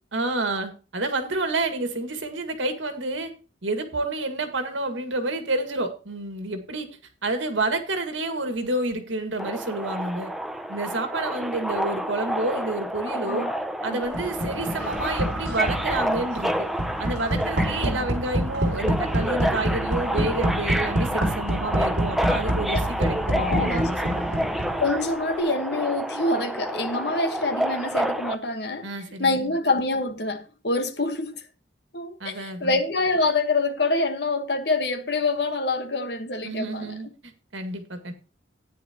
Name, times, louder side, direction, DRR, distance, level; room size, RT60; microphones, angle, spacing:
voice 1, 0.1-3.3 3.6-6.9 7.2-10.3 10.7-13.5 13.8-16.7 17.0-24.3 28.8-29.5 32.2-32.8 36.4-38.1, right 2 dB, 80° right, 1.9 m, -29 dB
Subway metro underground, 9.4-28.3, equal, ahead, 0.6 m, -29 dB
voice 2, 13.1-13.5 13.9-14.0 17.8-18.1 22.7-22.8 23.3-23.9 24.3-24.4 24.8-28.9 29.2-31.4 31.9-37.0, left 2 dB, 60° left, 1.3 m, -26 dB
sound 1, 14.1-25.0, right 1 dB, 60° right, 2.4 m, -28 dB
13.0 x 9.7 x 2.9 m
head